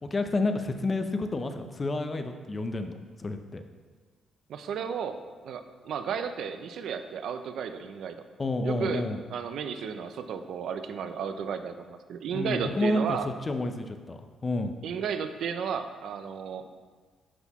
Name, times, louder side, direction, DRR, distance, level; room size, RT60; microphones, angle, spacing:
voice 1, 0.0-3.6 8.4-9.2 12.3-14.8, left 2 dB, 30° left, 7 dB, 0.6 m, -30 dB
voice 2, 4.5-5.2 5.4-8.2 8.6-9.0 9.3-13.3 14.8-16.7, right 7 dB, 70° right, 9 dB, 0.5 m, -33 dB
11.0 x 4.0 x 3.0 m, 1.5 s
cardioid pair, 90°, 0 cm